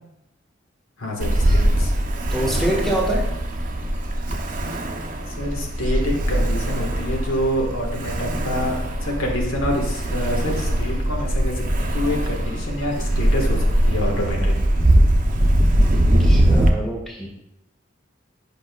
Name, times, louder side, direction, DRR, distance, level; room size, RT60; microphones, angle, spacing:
voice 1, 1.0-1.9 5.4-14.5, left 1 dB, 90° left, -1 dB, 1.4 m, -27 dB
Ocean, 1.2-16.7, right 1 dB, 40° right, 0.6 m, -21 dB
voice 2, 2.3-3.3 16.2-17.3, right 1 dB, ahead, -2 dB, 1.1 m, -25 dB
8.6 x 5.2 x 2.3 m, 0.87 s
head